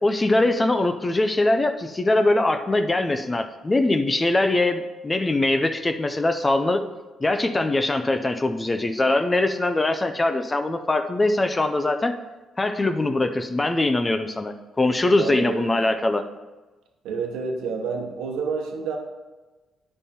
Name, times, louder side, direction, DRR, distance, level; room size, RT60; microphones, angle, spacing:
voice 1, 0.0-6.8 7.2-12.1 12.6-16.3, left 2 dB, 20° left, 7 dB, 0.6 m, -22 dB
voice 2, 15.2-15.7 17.0-19.0, right 5 dB, 90° right, 3 dB, 1.2 m, -29 dB
9.8 x 5.5 x 4.3 m, 1.2 s
cardioid pair, 90°, 0 cm